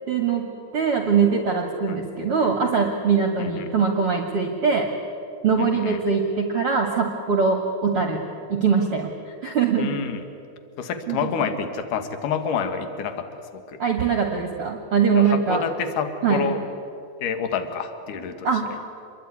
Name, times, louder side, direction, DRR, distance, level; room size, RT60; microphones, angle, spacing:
voice 1, 0.1-0.5 0.7-4.9 5.4-8.2 8.5-10.0 11.1-11.2 13.8-15.6 16.2-16.5 18.4-18.6, right 5 dB, 45° right, 3 dB, 2.1 m, -22 dB
voice 2, 5.6-6.0 9.8-10.2 10.8-13.3 13.5-13.8 15.2-16.6 17.2-18.5, left 6 dB, 60° left, 8 dB, 2.9 m, -28 dB
27.5 x 22.0 x 9.7 m, 2.6 s
omnidirectional pair, 4.7 m